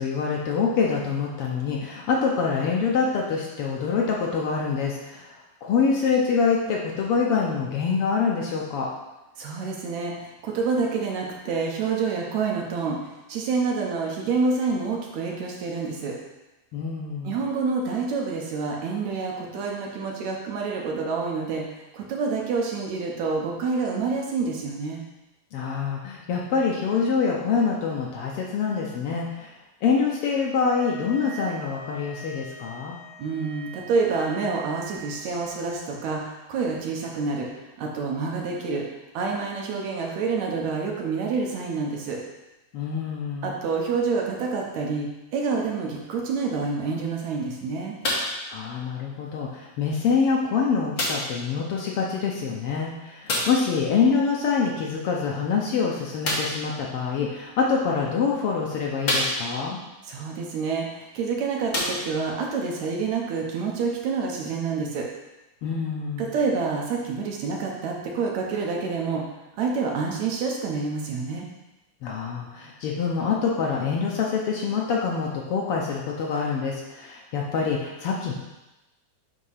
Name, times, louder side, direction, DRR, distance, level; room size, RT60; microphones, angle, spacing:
voice 1, 0.0-8.9 16.7-17.3 25.5-29.5 29.8-33.0 42.7-43.6 48.5-59.8 65.6-66.2 72.0-78.3, left 5 dB, 75° left, -2 dB, 1.3 m, -25 dB
voice 2, 9.4-10.1 10.4-13.0 13.3-16.1 17.2-21.6 21.9-25.0 33.2-37.5 37.8-38.8 39.1-42.2 43.4-47.9 60.0-60.9 61.1-65.0 66.2-69.2 69.6-71.5, right 4 dB, 75° right, -1 dB, 2.1 m, -27 dB
sound 1, 30.5-35.7, right 5 dB, 55° right, 2.7 m, -43 dB
sound 2, 48.0-48.4 49.3-49.4 51.0-51.4 53.3-53.7 56.2-56.6 57.6-57.7 58.3-58.4 59.0-59.7 61.0-61.1 61.6-62.4 63.2-63.3, left 1 dB, 50° left, 1.2 m, -27 dB
8.1 x 2.9 x 5.6 m, 1.0 s
omnidirectional pair, 3.4 m